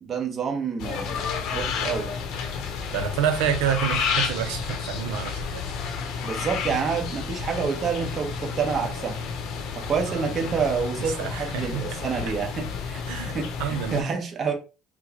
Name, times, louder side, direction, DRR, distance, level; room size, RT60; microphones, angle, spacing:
voice 1, 0.0-1.2 1.5-2.1 6.2-9.2 9.7-13.5 13.9-14.5, right 6 dB, 40° right, 1.1 m, -28 dB
sound 1, 0.8-14.0, left 6 dB, 70° left, 0.8 m, -31 dB
voice 2, 2.9-5.6 10.0-10.5 11.0-12.0 13.1-14.1, right 9 dB, 85° right, 0.6 m, -28 dB
4.5 x 2.2 x 2.9 m
supercardioid pair, 100°, 0 cm